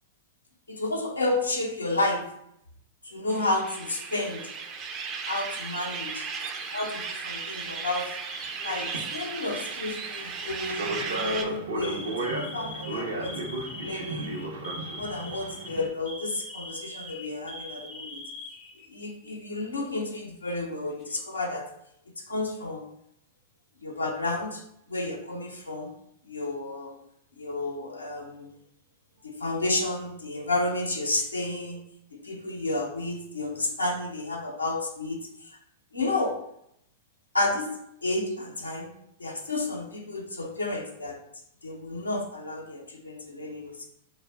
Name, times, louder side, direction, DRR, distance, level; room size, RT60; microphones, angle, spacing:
voice 1, 0.7-2.3 3.0-4.5 5.3-5.9 6.7-8.1 8.6-13.4 13.8-14.4 15.0-18.3 18.9-21.7 22.3-22.9 23.8-24.6 24.9-25.9 26.3-27.0 27.4-28.5 29.2-35.2 35.9-36.4 37.3-37.7 38.0-38.9 39.2-41.2 41.6-43.9, left 2 dB, 90° left, 1 dB, 0.5 m, -31 dB
sound 1, 3.3-11.4, right 5 dB, 35° right, 0.3 m, -36 dB
sound 2, 8.4-8.5 8.8-15.9, right 2 dB, 80° right, 0.6 m, -35 dB
Alarm, 8.9-9.4 10.3-10.6 11.1-11.2 11.8-19.4 19.7-19.8 20.7-21.4, left 1 dB, 35° left, 0.4 m, -42 dB
2.4 x 2.1 x 3.3 m, 0.76 s
hypercardioid pair, 100°, 0 cm